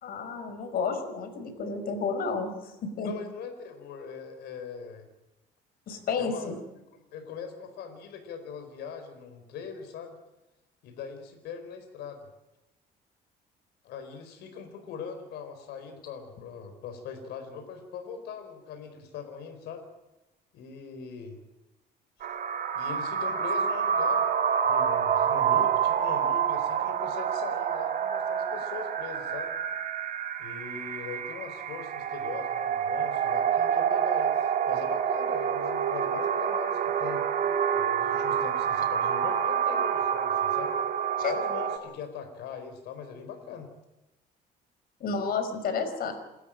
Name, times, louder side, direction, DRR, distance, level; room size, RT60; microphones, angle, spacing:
voice 1, 0.0-3.1 5.9-6.6 41.2-41.4 45.0-46.1, left 5 dB, 60° left, 8 dB, 5.5 m, -31 dB
voice 2, 3.0-5.1 6.2-6.5 6.9-10.2 10.8-12.2 13.8-19.9 20.5-21.4 22.7-24.3 24.7-29.5 30.4-37.2 37.7-40.8 41.3-43.7, left 6 dB, 80° left, 6 dB, 4.6 m, -41 dB
sound 1, 22.2-41.8, right 8 dB, 55° right, 3.2 m, -27 dB
28.5 x 13.5 x 9.0 m, 0.97 s
cardioid pair, 110°, 17 cm